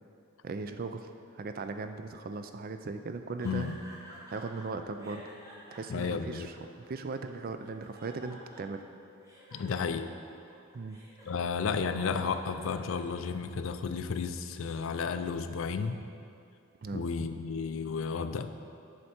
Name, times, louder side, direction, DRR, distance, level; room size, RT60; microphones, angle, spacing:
voice 1, 0.4-1.1 1.3-3.7 4.3-5.2 5.7-6.6 6.9-8.8 10.7-11.0 16.8-17.0, right 3 dB, 45° right, 8 dB, 0.4 m, -38 dB
voice 2, 3.4-3.8 5.9-6.5 9.5-10.1 11.3-16.0 16.9-18.5, left 5 dB, 70° left, 9 dB, 0.4 m, -32 dB
sound 1, 3.4-4.6 5.0-7.1 7.6-8.9 9.2-13.5, right 1 dB, 15° right, 1.8 m, -51 dB
7.8 x 6.6 x 4.3 m, 2.5 s
head